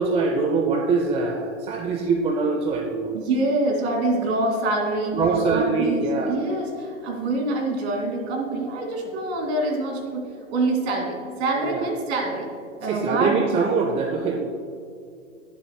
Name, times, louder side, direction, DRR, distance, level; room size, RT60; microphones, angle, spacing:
voice 1, 0.0-3.1 5.1-6.4 11.6-11.8 12.8-14.4, right 4 dB, 15° right, 3 dB, 0.6 m, -23 dB
voice 2, 3.1-5.2 5.5-12.5 12.8-13.6, right 2 dB, 50° right, 1 dB, 2.7 m, -25 dB
19.5 x 7.6 x 2.2 m, 2.3 s
figure-of-eight pair, 105°, 40 cm